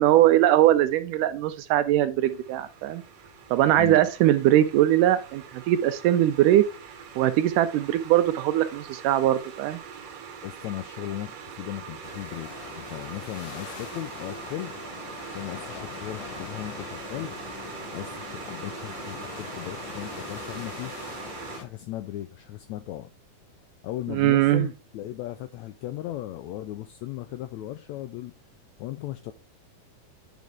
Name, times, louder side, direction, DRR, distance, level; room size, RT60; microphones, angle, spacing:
voice 1, 0.0-3.0 3.5-6.6 7.2-9.8 24.1-24.7, right 13 dB, 80° right, 2.1 m, -21 dB
sound 1, 2.2-21.6, right 7 dB, 60° right, 1.9 m, -42 dB
voice 2, 10.4-12.5 12.8-14.7 15.3-17.3 17.9-23.1 23.8-28.3 28.8-29.3, left 14 dB, 90° left, 1.6 m, -37 dB
sound 2, 12.0-21.7, left 7 dB, 70° left, 2.4 m, -42 dB
9.2 x 5.3 x 3.6 m
omnidirectional pair, 3.8 m